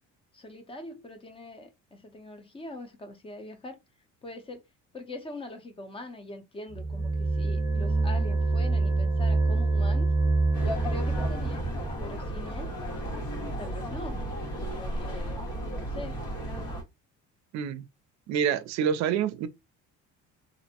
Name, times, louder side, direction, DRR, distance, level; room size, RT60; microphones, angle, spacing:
voice 1, 0.3-3.8 4.2-4.6 4.9-10.1 10.6-11.7 12.0-12.7 13.6-14.2 14.6-15.4 15.7-16.2, left 1 dB, 20° left, 0.6 m, -42 dB
sound 1, 6.7-11.8, right 3 dB, 10° right, 0.8 m, -26 dB
sound 2, 10.5-16.8, equal, 80° left, 1.4 m, -34 dB
voice 2, 17.5-17.8 18.3-19.5, right 8 dB, 65° right, 0.4 m, -27 dB
2.5 x 2.0 x 2.8 m
cardioid pair, 135°, 30 cm